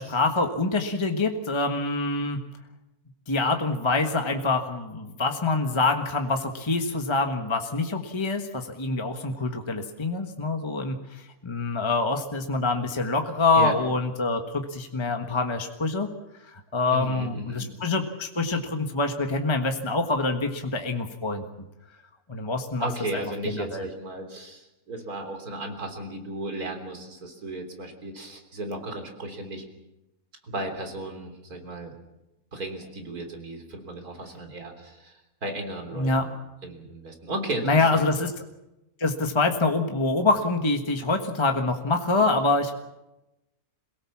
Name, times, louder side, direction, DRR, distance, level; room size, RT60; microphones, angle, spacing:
voice 1, 0.0-2.4 3.3-16.1 16.4-21.4 22.3-23.9 35.9-36.3 37.6-38.3 39.0-42.7, left 3 dB, 20° left, 4 dB, 1.4 m, -25 dB
voice 2, 16.9-17.7 22.8-29.6 30.4-31.9 32.5-35.1 35.4-36.3 36.6-38.1, right 2 dB, 85° right, 4 dB, 4.0 m, -35 dB
27.0 x 17.5 x 7.3 m, 0.95 s
omnidirectional pair, 1.5 m